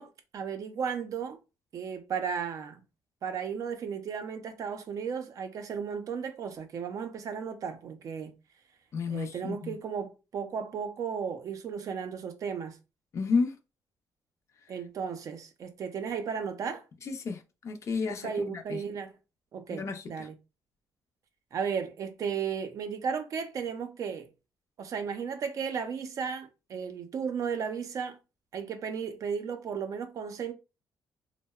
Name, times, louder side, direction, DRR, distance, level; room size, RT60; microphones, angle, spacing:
voice 1, 0.0-1.4 1.7-2.8 3.2-8.3 9.1-12.8 14.7-16.8 18.0-19.2 19.5-20.3 21.5-24.3 24.8-28.2 28.5-30.5, right 6 dB, 55° right, 0.4 m, -35 dB
voice 2, 8.9-9.7 13.1-13.6 17.0-18.8 19.7-20.3, left 4 dB, 45° left, 0.4 m, -32 dB
2.7 x 2.0 x 2.2 m
cardioid pair, 105°, 7 cm